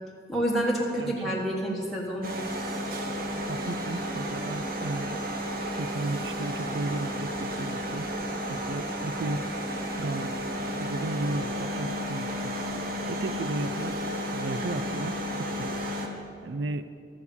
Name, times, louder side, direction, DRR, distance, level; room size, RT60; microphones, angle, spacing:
voice 1, 0.3-2.3, right 1 dB, ahead, -5 dB, 1.4 m, -28 dB
voice 2, 1.0-1.5 3.5-5.2 5.7-8.1 8.5-9.4 10.0-10.5 10.8-12.5 13.1-14.0 14.3-15.7 16.4-16.9, right 2 dB, 85° right, 12 dB, 0.4 m, -34 dB
sound 1, 2.2-16.1, equal, 55° right, 1.3 m, -32 dB
13.0 x 7.0 x 8.3 m, 2.5 s
head